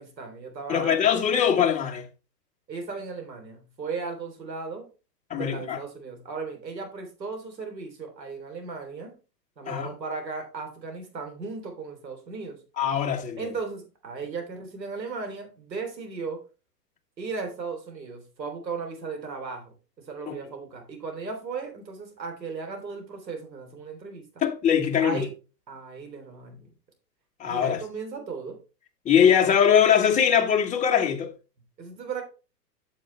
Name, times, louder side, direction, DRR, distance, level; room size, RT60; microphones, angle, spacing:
voice 1, 0.0-1.0 2.7-4.9 5.3-9.2 9.6-12.6 13.4-16.4 17.2-24.3 25.0-25.3 25.7-26.7 27.5-28.6 29.2-29.3 31.8-32.2, right 4 dB, 90° right, 3.5 m, -36 dB
voice 2, 0.7-2.0 5.3-5.8 9.7-9.9 12.8-13.4 20.3-20.4 24.4-25.2 27.4-27.8 29.0-31.3, left 8 dB, 15° left, 1.3 m, -22 dB
9.3 x 7.1 x 3.3 m
hypercardioid pair, 130°, 49 cm